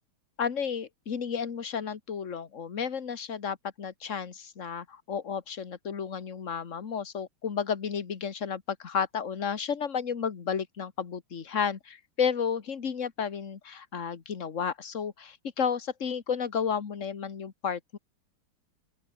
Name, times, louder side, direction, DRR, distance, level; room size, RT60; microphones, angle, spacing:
voice 1, 0.4-18.0, left 7 dB, 40° left, 1.8 m, -32 dB
open air
omnidirectional pair, 2.3 m